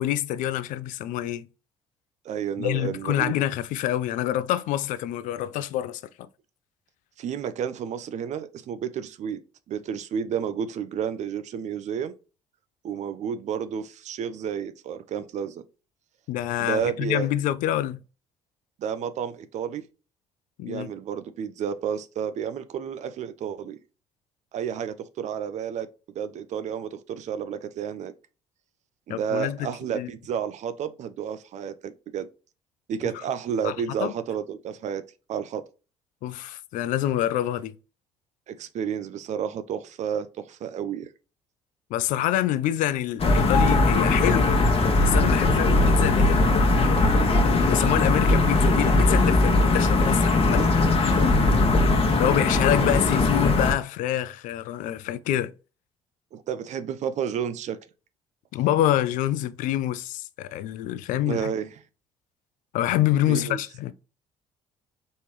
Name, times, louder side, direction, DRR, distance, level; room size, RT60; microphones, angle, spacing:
voice 1, 0.0-1.5 2.6-6.3 16.3-18.0 20.6-20.9 29.1-29.7 29.9-30.1 33.0-33.1 33.6-34.1 36.2-37.7 41.9-44.5 45.0-46.6 47.4-50.7 52.2-55.5 58.5-61.5 62.7-63.9, left 12 dB, 60° left, 0.4 m, -26 dB
voice 2, 2.2-3.3 7.2-9.4 9.7-12.1 12.8-15.6 16.6-17.3 18.8-19.8 20.6-23.8 24.5-25.9 26.1-28.1 29.1-32.3 32.9-35.0 35.3-35.6 38.5-41.1 52.8-52.9 56.3-57.8 61.2-61.7 63.3-63.6, right 8 dB, 50° right, 0.5 m, -31 dB
sound 1, 43.2-53.7, left 2 dB, 40° left, 1.1 m, -20 dB
4.3 x 3.4 x 3.2 m
hypercardioid pair, 50°, 15 cm